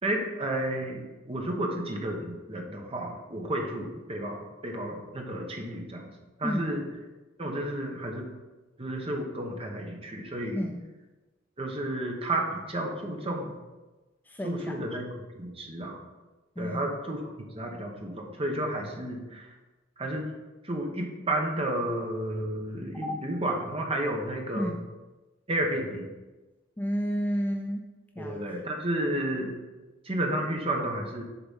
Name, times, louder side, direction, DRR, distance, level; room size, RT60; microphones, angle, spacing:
voice 1, 0.0-6.1 6.4-6.8 7.4-8.3 8.8-10.6 11.6-13.6 14.4-15.1 15.3-16.0 16.6-17.2 17.5-19.4 20.0-20.2 20.6-24.7 25.5-26.1 28.2-29.6 30.0-31.2, right 1 dB, 30° right, 1 dB, 1.1 m, -31 dB
voice 2, 10.5-10.9 14.2-14.7 16.6-17.0 22.9-23.1 24.5-24.8 26.8-27.8 28.2-28.4, equal, 10° left, 2 dB, 0.4 m, -31 dB
7.0 x 3.9 x 5.6 m, 1.2 s
head